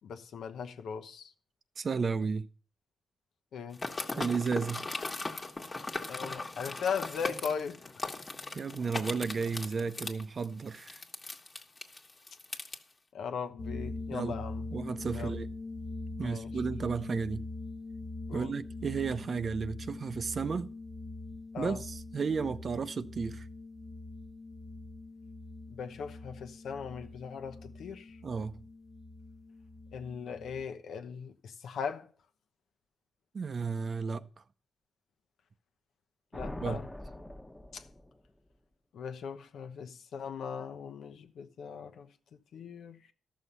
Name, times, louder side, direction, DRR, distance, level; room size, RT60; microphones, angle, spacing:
voice 1, 0.0-1.3 3.5-3.8 6.1-7.8 13.1-14.7 15.1-15.3 16.2-16.5 18.3-18.5 21.5-21.8 25.7-28.2 29.9-32.1 36.3-36.9 37.7-37.8 38.9-43.1, left 6 dB, 85° left, 1.0 m, -39 dB
voice 2, 1.8-2.5 4.2-4.9 8.5-11.0 14.1-14.3 14.7-15.5 16.2-17.4 18.3-20.7 21.6-23.5 28.2-28.6 33.3-34.3 36.6-36.8, right 5 dB, 50° right, 0.6 m, -33 dB
sound 1, 3.7-12.8, left 3 dB, 30° left, 1.4 m, -39 dB
sound 2, 13.6-30.6, left 2 dB, 50° left, 1.3 m, -43 dB
sound 3, 36.3-38.3, left 1 dB, 10° left, 1.0 m, -43 dB
13.5 x 6.4 x 5.6 m
cardioid pair, 95°, 0 cm